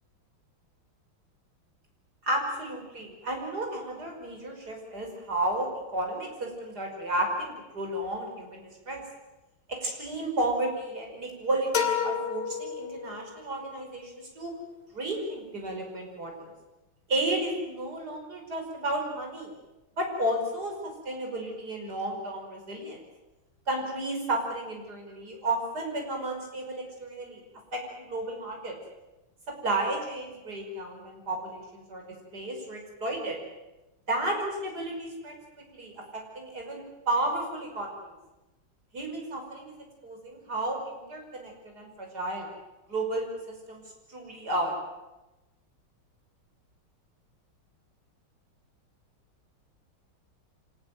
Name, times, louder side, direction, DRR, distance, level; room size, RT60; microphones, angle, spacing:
voice 1, 2.2-9.0 9.7-14.6 14.9-16.5 17.1-19.5 20.0-23.0 23.7-27.4 27.7-28.8 29.6-32.0 32.3-33.4 34.1-35.3 35.7-38.1 38.9-39.7 40.0-42.5 42.9-43.3 43.7-43.8 44.1-44.7, right 1 dB, 50° right, 1 dB, 6.0 m, -32 dB
sound 1, 11.7-13.5, left 7 dB, 50° left, 3.3 m, -30 dB
25.5 x 18.5 x 9.2 m, 1.0 s
omnidirectional pair, 2.3 m